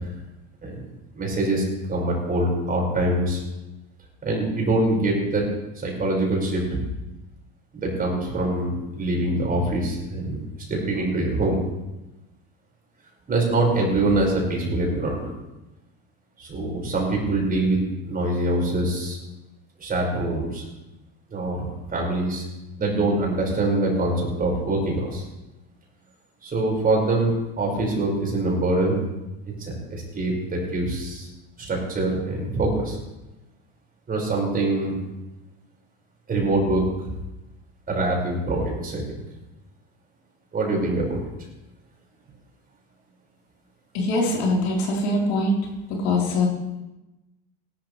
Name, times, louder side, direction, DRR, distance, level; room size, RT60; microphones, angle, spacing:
voice 1, 1.1-1.6 1.9-3.4 4.2-5.5 5.8-6.8 7.8-10.4 10.7-11.6 13.3-15.3 16.4-19.2 19.8-20.6 21.3-22.4 22.8-25.2 26.4-29.0 29.6-31.3 31.6-33.0 34.1-35.0 36.3-36.8 37.9-39.0 40.5-41.2, right 2 dB, 30° right, -2 dB, 5.6 m, -24 dB
voice 2, 43.9-45.6 45.9-46.5, left 2 dB, 80° left, -3 dB, 4.3 m, -22 dB
17.5 x 12.5 x 3.4 m, 0.98 s
supercardioid pair, 110°, 31 cm